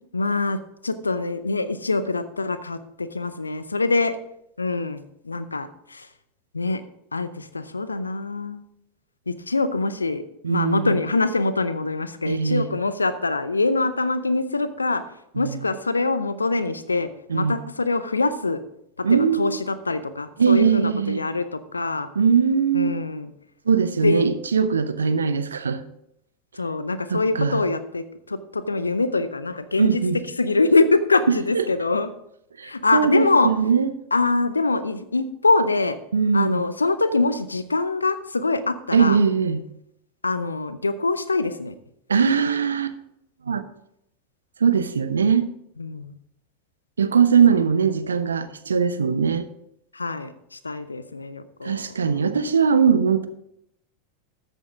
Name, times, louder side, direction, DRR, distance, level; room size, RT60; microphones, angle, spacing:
voice 1, 0.1-0.6 0.8-4.1 4.6-6.1 6.5-6.8 7.1-8.6 9.3-10.2 10.5-15.0 15.4-18.6 19.0-22.1 22.7-23.3 24.0-24.3 26.6-30.0 30.4-32.1 32.6-33.5 34.1-36.0 36.3-39.2 40.2-41.7 45.8-46.1 47.5-47.6 49.9-51.9, left 3 dB, 85° left, 13 dB, 0.7 m, -24 dB
voice 2, 10.4-11.0 12.2-12.7 15.3-15.6 17.3-17.6 19.0-19.6 20.4-21.2 22.1-23.0 23.7-25.8 27.1-27.6 29.8-30.2 31.3-31.7 32.6-33.9 36.1-36.6 38.9-39.6 42.1-43.0 43.5-43.6 44.6-45.4 47.0-49.5 51.6-53.3, right 6 dB, 75° right, 11 dB, 0.7 m, -20 dB
13.5 x 8.1 x 3.6 m, 0.77 s
figure-of-eight pair, 85°, 0 cm